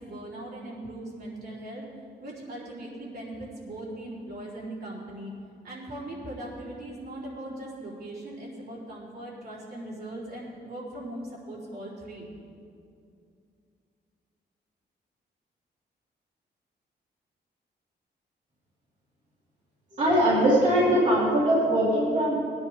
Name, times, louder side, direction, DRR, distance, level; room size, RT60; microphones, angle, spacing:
voice 1, 0.0-1.8 2.2-5.3 5.6-12.3, right 1 dB, 60° right, -7 dB, 3.8 m, -39 dB
voice 2, 19.9-22.4, right 1 dB, 40° right, -9 dB, 3.0 m, -21 dB
20.0 x 10.5 x 3.5 m, 2.4 s
wide cardioid pair, 160°, 18 cm